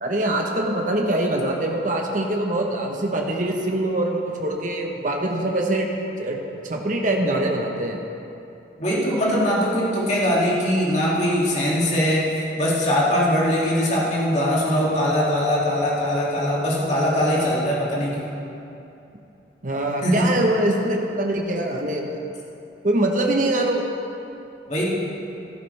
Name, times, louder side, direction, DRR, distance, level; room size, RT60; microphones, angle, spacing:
voice 1, 0.0-5.9 6.2-6.4 6.6-8.0 19.6-22.2 22.8-23.8, right 1 dB, 45° right, 1 dB, 1.1 m, -23 dB
voice 2, 8.8-18.3 20.0-20.3 24.7-24.9, equal, 40° left, -6 dB, 2.6 m, -21 dB
14.5 x 11.5 x 3.4 m, 2.8 s
head